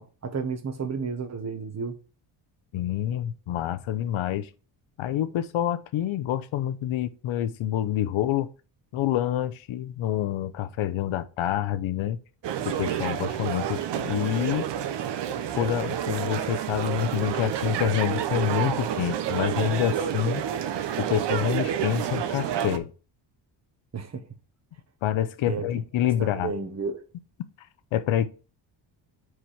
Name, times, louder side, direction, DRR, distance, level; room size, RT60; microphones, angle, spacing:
voice 1, 0.0-2.0 23.9-24.2 25.5-25.6 26.2-27.0, right 5 dB, 35° right, 1.3 m, -32 dB
voice 2, 2.7-4.5 5.0-8.5 8.9-12.2 12.6-14.7 15.6-20.4 21.0-22.9 25.0-26.5 27.9-28.3, left 11 dB, 80° left, 0.8 m, -27 dB
sound 1, 12.4-22.8, right 10 dB, 60° right, 0.9 m, -29 dB
5.0 x 4.9 x 5.7 m
cardioid pair, 120°, 47 cm